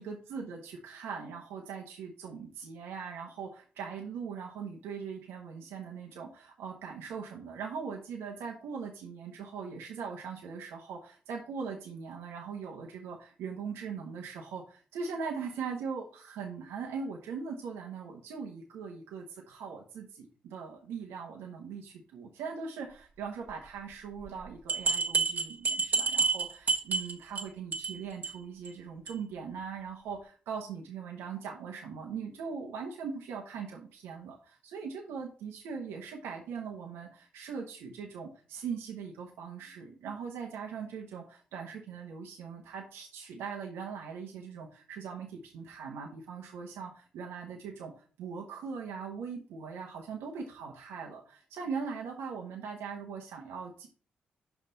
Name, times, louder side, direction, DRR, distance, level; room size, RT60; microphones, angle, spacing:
voice 1, 0.0-53.9, right 5 dB, 90° right, 0 dB, 1.1 m, -40 dB
sound 1, 24.3-24.4 24.7-27.4 27.7-28.0 28.2-28.3 28.7-28.8 29.1-29.2, right 4 dB, 50° right, 1.8 m, -29 dB
5.9 x 5.7 x 4.0 m, 0.39 s
supercardioid pair, 55°, 4 cm